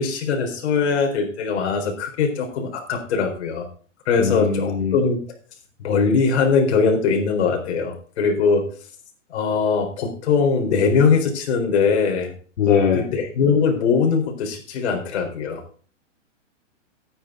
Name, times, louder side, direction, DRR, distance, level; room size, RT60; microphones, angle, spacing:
voice 1, 0.0-3.7 4.1-5.2 5.8-8.7 9.3-12.3 12.9-15.6, left 5 dB, 60° left, 4 dB, 4.2 m, -21 dB
voice 2, 4.2-4.9 12.6-13.0, left 6 dB, 75° left, 0 dB, 2.6 m, -20 dB
13.5 x 9.7 x 3.8 m, 0.42 s
hypercardioid pair, 150°, 38 cm